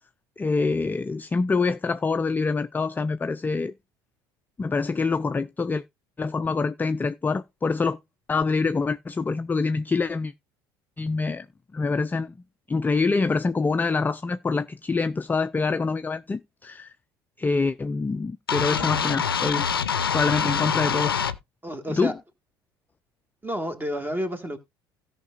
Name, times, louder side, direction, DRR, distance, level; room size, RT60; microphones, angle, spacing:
voice 1, 0.4-3.7 4.6-5.8 6.2-8.0 8.3-10.3 11.0-11.5 11.7-12.3 12.7-16.9 17.4-19.7 20.1-21.2 21.9-22.1, left 4 dB, 15° left, 0.4 m, -25 dB
sound 1, 18.5-21.3, left 7 dB, 85° left, 0.5 m, -25 dB
voice 2, 21.6-22.2 23.4-24.6, equal, 15° right, 1.7 m, -30 dB
17.0 x 5.8 x 2.4 m
figure-of-eight pair, 65°, 12 cm